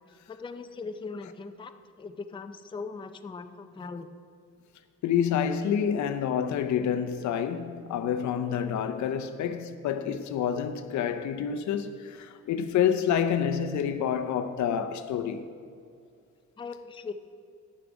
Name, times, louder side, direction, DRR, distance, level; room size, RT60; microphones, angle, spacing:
voice 1, 0.3-1.7 2.0-4.1 16.6-17.1, left 4 dB, 15° left, 0.5 m, -39 dB
voice 2, 5.0-15.4, left 8 dB, 70° left, 0.7 m, -28 dB
11.0 x 6.9 x 5.1 m
cardioid pair, 90°, 30 cm